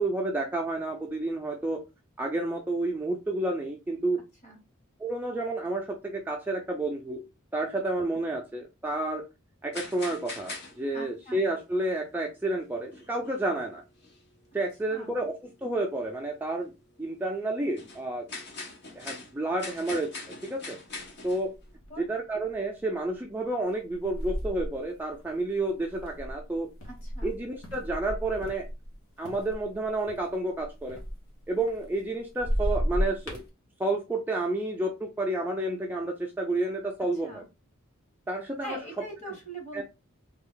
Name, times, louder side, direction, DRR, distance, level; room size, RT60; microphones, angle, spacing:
voice 1, 0.0-1.8 2.2-4.2 5.0-7.2 7.5-9.2 9.6-13.8 14.5-16.7 17.0-18.3 18.9-20.1 20.4-20.8 21.2-21.5 22.0-26.7 27.2-28.6 29.2-31.0 31.5-33.4 33.8-37.4 38.3-38.8 39.7-39.8, right 2 dB, 10° right, 0 dB, 0.4 m, -30 dB
sound 1, 9.7-11.0 11.2-11.7 12.4-12.5 12.9-13.6 14.0-14.2 14.7-14.8 15.1-15.2 15.9-16.1 16.7-16.9 17.3-21.7, left 3 dB, 55° left, 1.0 m, -42 dB
voice 2, 10.9-11.4 14.9-15.2 21.9-22.1 26.8-27.3 37.2-37.5 38.6-39.8, right 1 dB, 35° left, 1 dB, 1.4 m, -42 dB
sound 2, 21.0-21.1 21.5-22.0 22.5-22.8 23.7-28.9 29.2-32.1 32.3-33.5, equal, 75° left, 1.2 m, -33 dB
3.4 x 2.3 x 3.6 m, 0.26 s
head